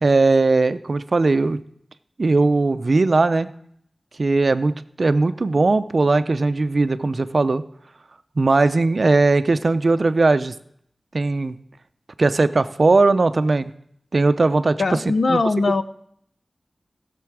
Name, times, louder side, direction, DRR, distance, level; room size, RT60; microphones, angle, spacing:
voice 1, 0.0-1.6 2.2-3.5 4.2-7.6 8.4-10.5 11.1-11.6 12.2-13.7 14.1-15.0 15.3-15.4, right 3 dB, 55° right, 13 dB, 0.5 m, -18 dB
voice 2, 14.8-15.8, left 3 dB, 70° left, 12 dB, 0.6 m, -20 dB
16.0 x 6.8 x 4.7 m, 0.69 s
wide cardioid pair, 75°, 0 cm